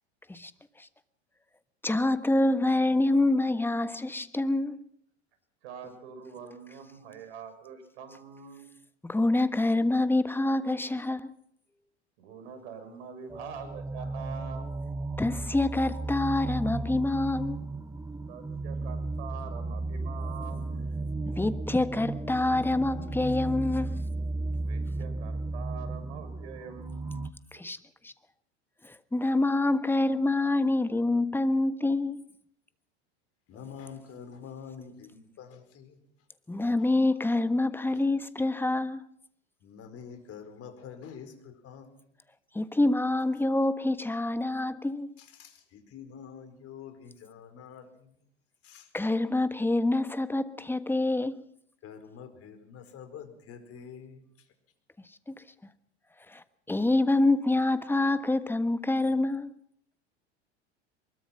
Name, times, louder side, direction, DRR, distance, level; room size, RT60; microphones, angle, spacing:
voice 1, 1.8-4.8 9.0-11.3 15.2-17.6 21.3-23.9 27.5-27.8 28.0-28.1 29.1-32.2 36.5-39.0 42.5-45.1 48.9-51.4 55.3-55.4 56.3-59.5, left 2 dB, 5° left, 1.3 m, -26 dB
voice 2, 5.6-8.7 12.2-14.7 18.3-20.8 24.6-27.3, right 6 dB, 65° right, 6.8 m, -44 dB
sound 1, 13.3-27.3, right 2 dB, 10° right, 1.0 m, -34 dB
voice 3, 33.5-36.0 36.8-36.9 37.2-37.3 37.9-38.1 39.6-42.0 45.2-48.2 48.6-48.9 51.8-54.5, left 7 dB, 40° left, 4.8 m, -47 dB
23.5 x 21.5 x 5.9 m
hypercardioid pair, 95°, 34 cm